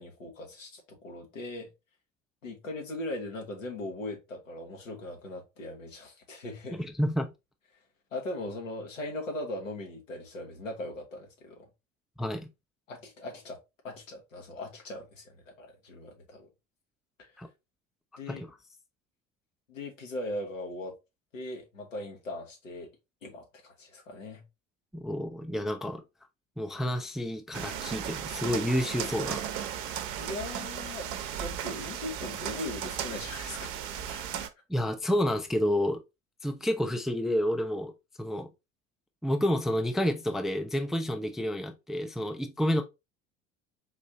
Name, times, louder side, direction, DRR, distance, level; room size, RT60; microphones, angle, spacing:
voice 1, 0.0-1.7 2.4-6.8 8.1-11.7 12.9-13.6 13.8-16.5 17.2-17.4 18.2-18.5 19.7-20.9 21.3-22.9 23.2-24.4 30.1-33.7 34.1-34.2, left 1 dB, 85° left, 1.0 m, -39 dB
voice 2, 6.7-7.3 12.2-12.5 17.4-17.5 18.3-18.4 24.9-26.0 26.6-29.4 34.7-36.0 36.4-37.9 38.2-38.5 39.2-42.8, left 1 dB, ahead, 0.4 m, -29 dB
sound 1, 27.5-34.5, right 9 dB, 60° right, 0.7 m, -36 dB
4.1 x 2.6 x 2.8 m
figure-of-eight pair, 60°, 38 cm